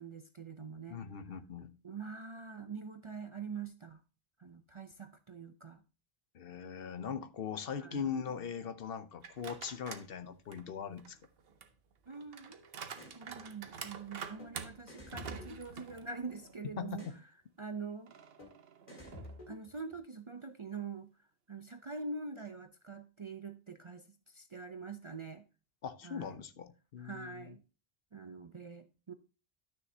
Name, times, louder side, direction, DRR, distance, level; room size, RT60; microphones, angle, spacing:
voice 1, 0.0-1.0 1.8-4.0 4.4-5.8 7.8-8.1 12.1-12.8 13.1-17.1 17.6-18.1 19.5-21.1 21.5-25.4 26.0-26.4 27.0-27.6 28.1-29.1, right 4 dB, 40° right, 0.5 m, -44 dB
voice 2, 0.9-1.7 6.3-11.2 16.8-17.1 25.8-27.5, left 7 dB, 65° left, 0.9 m, -40 dB
sound 1, 9.2-10.1 10.5-16.6 17.0-17.1 18.1-19.5, right 6 dB, 65° right, 1.0 m, -48 dB
sound 2, 12.9-13.2 14.4-14.5 14.9-16.3 16.9-17.2 18.4-18.5 18.9-20.0, left 1 dB, 45° left, 2.1 m, -50 dB
12.0 x 6.4 x 2.7 m
omnidirectional pair, 1.1 m